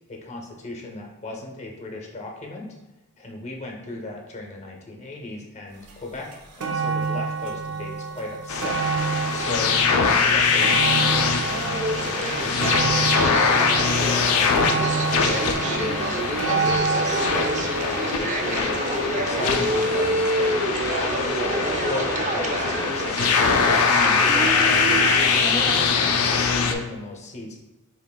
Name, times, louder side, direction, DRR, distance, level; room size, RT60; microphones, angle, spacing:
voice 1, 0.1-2.7 3.2-6.3 6.6-8.8 9.1-17.3 17.8-20.5 20.9-23.3 23.6-27.6, left 2 dB, 30° left, 1 dB, 0.6 m, -36 dB
sound 1, 5.9-6.0 6.3-19.5 20.3-20.4, right 4 dB, 80° right, 0.5 m, -29 dB
sound 2, 8.5-26.7, left 5 dB, 75° left, 0.4 m, -23 dB
sound 3, 11.2-25.9, right 2 dB, 35° right, 0.4 m, -28 dB
5.1 x 2.9 x 2.2 m, 1.0 s
head